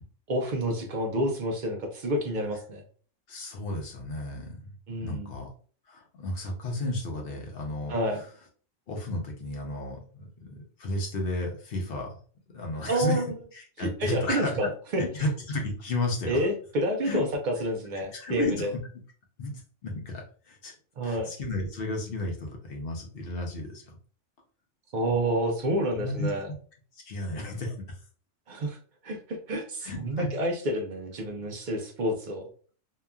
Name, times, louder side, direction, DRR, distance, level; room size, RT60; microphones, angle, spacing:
voice 1, 0.3-2.8 4.9-5.3 7.9-8.2 12.9-13.2 13.8-15.0 16.3-18.7 21.0-21.3 24.9-26.5 28.5-28.8 29.0-32.5, right 1 dB, 70° right, 2 dB, 0.4 m, -29 dB
voice 2, 3.3-5.5 5.9-8.3 8.9-12.2 12.5-13.2 13.5-14.7 15.0-16.5 17.0-17.2 17.9-18.8 19.4-19.5 19.8-20.7 21.0-24.0 25.9-26.5 26.9-28.0 29.8-30.3, left 2 dB, 55° left, 1 dB, 0.8 m, -33 dB
2.8 x 2.3 x 2.2 m, 0.42 s
omnidirectional pair, 1.3 m